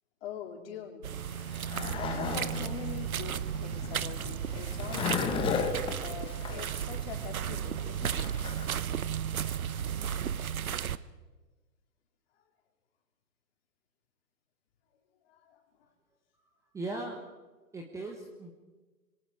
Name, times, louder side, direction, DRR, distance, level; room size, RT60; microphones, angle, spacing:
voice 1, 0.2-1.1 1.5-1.7 1.9-8.3 15.3-15.6, left 8 dB, 40° left, 3 dB, 3.7 m, -43 dB
sound 1, 1.0-11.0, right 9 dB, 60° right, 0.9 m, -34 dB
Skateboard, 1.2-8.7, left 5 dB, 10° left, 1.4 m, -36 dB
voice 2, 16.7-17.2 17.7-18.5, right 2 dB, 5° right, 2 dB, 1.2 m, -38 dB
26.0 x 23.0 x 4.8 m, 1.2 s
figure-of-eight pair, 130°, 47 cm